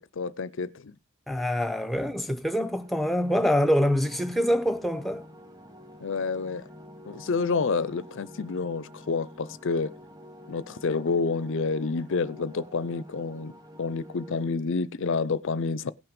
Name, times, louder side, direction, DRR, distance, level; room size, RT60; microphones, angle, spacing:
voice 1, 0.2-0.9 6.0-6.7 7.0-10.0 10.5-13.5 13.8-15.9, left 4 dB, 55° left, 0.5 m, -29 dB
voice 2, 1.3-5.2, equal, ahead, 0.8 m, -25 dB
sound 1, 2.6-14.5, equal, 15° right, 1.4 m, -49 dB
17.5 x 5.9 x 5.2 m
head